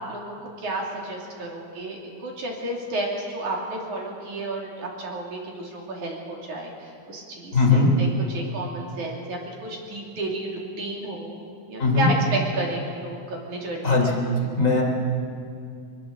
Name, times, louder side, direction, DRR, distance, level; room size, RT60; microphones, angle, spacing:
voice 1, 0.1-11.4 11.7-14.1, right 2 dB, 45° right, -1 dB, 3.5 m, -32 dB
voice 2, 7.5-7.9 11.8-12.1 13.8-14.1 14.6-14.8, left 4 dB, 20° left, 0 dB, 2.6 m, -19 dB
24.0 x 21.5 x 7.6 m, 2.4 s
omnidirectional pair, 5.9 m